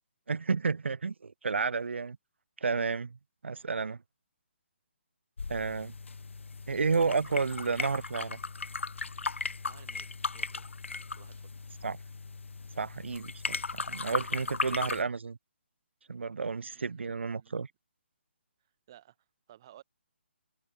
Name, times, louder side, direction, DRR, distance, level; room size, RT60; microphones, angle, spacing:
voice 1, 0.3-2.2 2.6-3.2 3.4-4.0 5.5-5.9 6.7-8.4 11.8-12.0 12.8-15.4 16.1-17.7, right 4 dB, 70° right, 1.4 m, -31 dB
sound 1, 5.4-15.0, left 4 dB, 85° left, 2.8 m, -37 dB
voice 2, 9.6-10.7 11.1-11.5 16.7-17.6 18.9-19.2 19.5-19.8, right 12 dB, 20° right, 4.2 m, -57 dB
hypercardioid pair, 180°, 7 cm